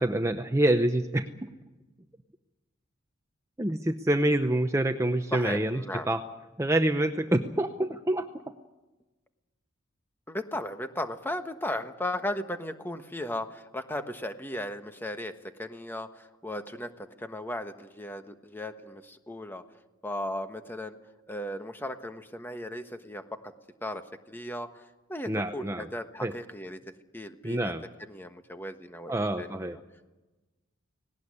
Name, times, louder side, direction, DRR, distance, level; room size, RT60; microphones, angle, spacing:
voice 1, 0.0-1.5 3.6-5.8 6.1-6.2 6.6-8.3 25.3-25.9 26.2-26.3 27.4-27.8 29.1-29.8, right 1 dB, 15° right, 7 dB, 0.7 m, -26 dB
voice 2, 5.3-6.1 10.3-19.6 20.0-21.0 21.3-23.5 23.8-24.0 24.3-24.8 25.1-26.8 27.1-27.7 28.0-29.8, left 1 dB, 10° left, 7 dB, 1.3 m, -36 dB
18.5 x 18.5 x 9.8 m, 1.1 s
head